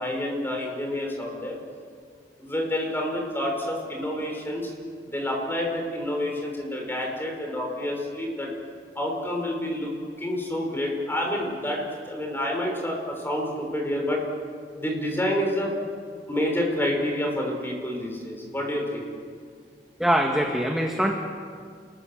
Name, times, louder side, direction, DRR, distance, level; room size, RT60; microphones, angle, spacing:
voice 1, 0.0-1.6 2.4-4.7 5.0-8.5 9.0-9.9 10.2-14.2 14.8-15.7 16.3-19.1, left 1 dB, 15° left, 0 dB, 5.5 m, -28 dB
voice 2, 20.0-21.1, equal, ahead, 1 dB, 1.6 m, -23 dB
29.0 x 21.5 x 7.3 m, 2.1 s
head